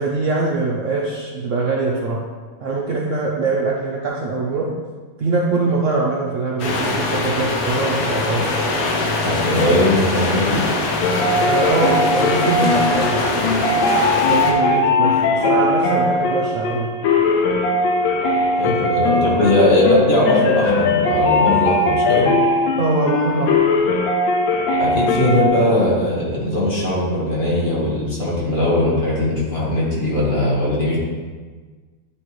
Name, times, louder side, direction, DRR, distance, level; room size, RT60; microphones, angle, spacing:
voice 1, 0.0-2.2 2.6-4.7 5.2-8.5 11.4-13.2 14.3-16.9 18.6-18.8 19.4-19.5 22.8-23.5, right 3 dB, 90° right, -3 dB, 0.6 m, -22 dB
sound 1, 6.6-14.5, left 2 dB, 60° left, 1.2 m, -22 dB
voice 2, 9.2-10.6 18.6-22.3 24.8-31.0, left 1 dB, 35° left, -6 dB, 1.5 m, -19 dB
sound 2, 11.0-25.5, left 2 dB, 80° left, 1.5 m, -19 dB
9.6 x 3.3 x 3.1 m, 1.4 s
omnidirectional pair, 2.2 m